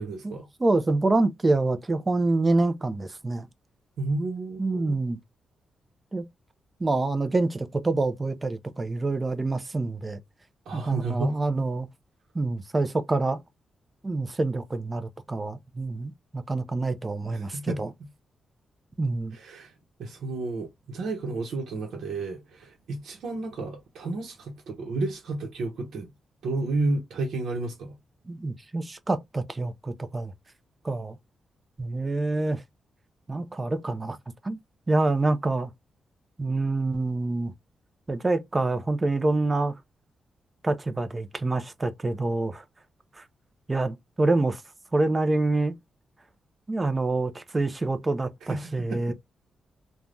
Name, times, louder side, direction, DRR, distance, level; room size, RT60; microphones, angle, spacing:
voice 1, 0.0-0.5 4.0-5.0 10.7-11.4 17.3-17.8 19.3-19.7 20.0-26.1 26.4-27.9 48.5-49.1, right 2 dB, 80° right, 0.8 m, -31 dB
voice 2, 0.6-3.5 4.6-5.2 6.1-6.2 6.8-10.2 10.7-11.9 12.3-13.4 14.0-17.9 19.0-19.4 28.3-30.3 30.8-31.2 31.8-32.6 33.3-34.2 34.4-34.6 34.9-35.7 36.4-37.5 38.1-39.7 40.6-42.6 43.2-43.3 43.7-44.6 44.9-45.7 46.7-49.1, right 2 dB, 20° right, 0.5 m, -26 dB
3.3 x 2.2 x 2.5 m
cardioid pair, 120°, 0 cm